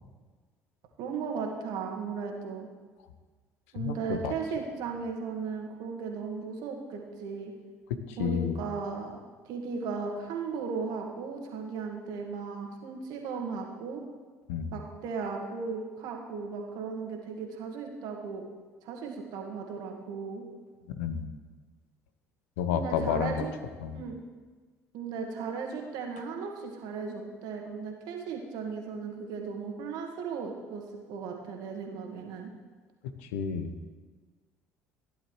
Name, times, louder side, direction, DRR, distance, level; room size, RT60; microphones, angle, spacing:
voice 1, 1.0-2.7 3.7-7.5 8.2-9.2 9.5-14.0 14.7-18.4 18.8-20.4 22.7-23.5 23.9-24.2 24.9-30.8 31.1-32.5, right 5 dB, 60° right, 1 dB, 1.8 m, -36 dB
voice 2, 8.1-8.6 14.5-14.8 20.9-21.3 22.6-23.4 23.8-24.0 33.3-33.7, left 7 dB, 70° left, 10 dB, 0.8 m, -30 dB
15.5 x 10.5 x 3.2 m, 1.4 s
figure-of-eight pair, 60°, 8 cm